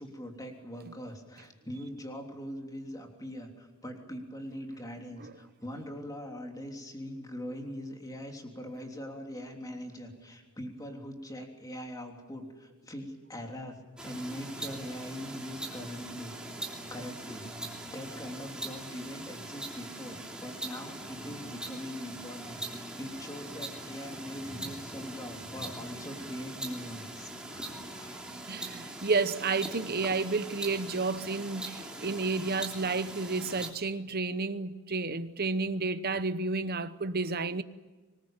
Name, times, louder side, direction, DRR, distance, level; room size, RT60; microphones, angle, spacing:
voice 1, 0.0-16.3 16.6-17.5 17.9-28.2 29.9-30.1, equal, 15° left, 3.2 m, -42 dB
sound 1, 14.0-33.7, right 2 dB, 5° right, 3.0 m, -42 dB
voice 2, 28.5-37.6, right 3 dB, 45° right, 0.9 m, -31 dB
25.5 x 20.5 x 8.9 m
head